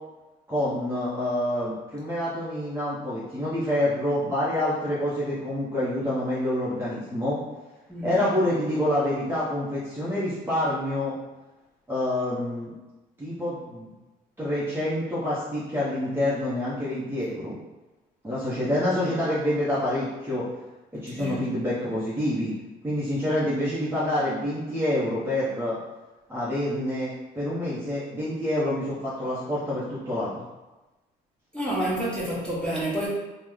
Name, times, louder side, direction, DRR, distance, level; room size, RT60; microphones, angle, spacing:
voice 1, 0.5-7.4 8.0-11.2 11.9-12.7 13.2-13.9 14.4-17.6 18.2-20.4 21.0-22.5 22.8-25.8 26.3-30.4, left 1 dB, 15° right, -10 dB, 0.7 m, -27 dB
voice 2, 7.9-8.2 21.2-21.5 31.5-33.1, right 1 dB, 5° left, -7 dB, 1.1 m, -29 dB
3.0 x 2.0 x 3.6 m, 1.1 s
cardioid pair, 110°, 17 cm